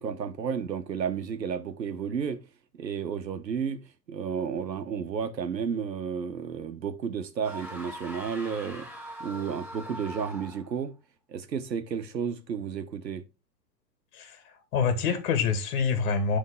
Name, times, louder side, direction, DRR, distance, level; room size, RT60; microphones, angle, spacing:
voice 1, 0.0-2.4 2.7-3.8 4.1-8.9 9.2-10.9 11.3-13.2, right 7 dB, 85° right, 1.2 m, -32 dB
sound 1, 7.4-10.8, equal, ahead, 4.4 m, -42 dB
voice 2, 14.1-16.4, left 5 dB, 50° left, 2.0 m, -27 dB
11.0 x 3.8 x 3.7 m
hypercardioid pair, 110°, 49 cm